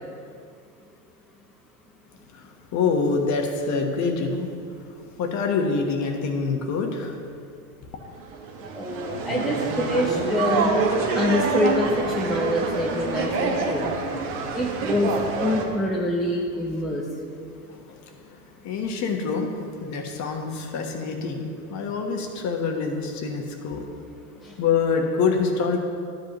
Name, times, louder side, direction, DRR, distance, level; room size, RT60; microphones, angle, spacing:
voice 1, 2.3-4.5 5.2-7.1 18.6-23.8 24.6-25.8, left 5 dB, 40° left, 3 dB, 1.1 m, -26 dB
sound 1, 8.3-15.6, right 4 dB, 60° right, 1.3 m, -26 dB
voice 2, 8.7-10.7 11.1-14.0 14.5-17.1 24.4-24.6, left 1 dB, ahead, -3 dB, 0.4 m, -26 dB
11.5 x 7.9 x 3.0 m, 2.3 s
supercardioid pair, 125°, 46 cm